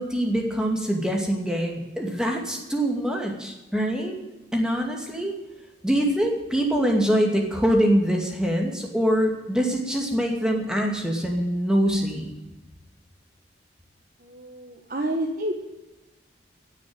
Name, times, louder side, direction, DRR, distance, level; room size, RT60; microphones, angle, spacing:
voice 1, 0.0-4.2 4.5-5.3 5.8-12.2, equal, 5° right, 1 dB, 2.4 m, -24 dB
voice 2, 14.2-15.6, right 1 dB, 50° right, 1 dB, 1.3 m, -29 dB
16.5 x 6.6 x 8.9 m, 1.1 s
head